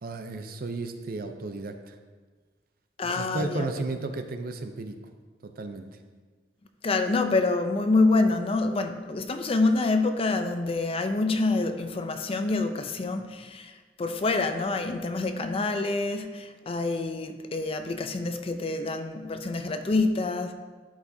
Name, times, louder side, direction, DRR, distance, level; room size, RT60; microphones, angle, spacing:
voice 1, 0.0-2.0 3.0-5.0 5.6-5.9, right 3 dB, 55° right, 7 dB, 0.5 m, -33 dB
voice 2, 3.0-3.8 6.8-20.5, left 3 dB, 35° left, 8 dB, 0.5 m, -27 dB
11.5 x 5.0 x 2.7 m, 1.4 s
head